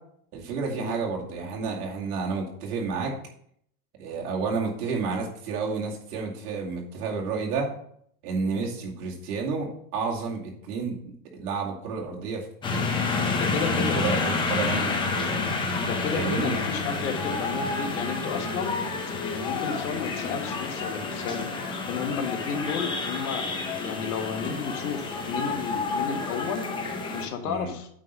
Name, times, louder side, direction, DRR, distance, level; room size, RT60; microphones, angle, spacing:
voice 1, 0.3-3.1 4.0-7.7 8.2-13.0 13.7-15.4 16.1-16.5 27.4-27.7, right 4 dB, 85° right, -1 dB, 2.4 m, -31 dB
sound 1, 12.6-27.3, left 3 dB, 10° left, 0.6 m, -29 dB
voice 2, 13.3-14.0 14.7-18.8 19.2-21.4 21.9-23.4 23.8-26.7 27.1-27.9, left 6 dB, 80° left, 4 dB, 1.6 m, -32 dB
9.0 x 3.8 x 5.4 m, 0.67 s
supercardioid pair, 155°, 45 cm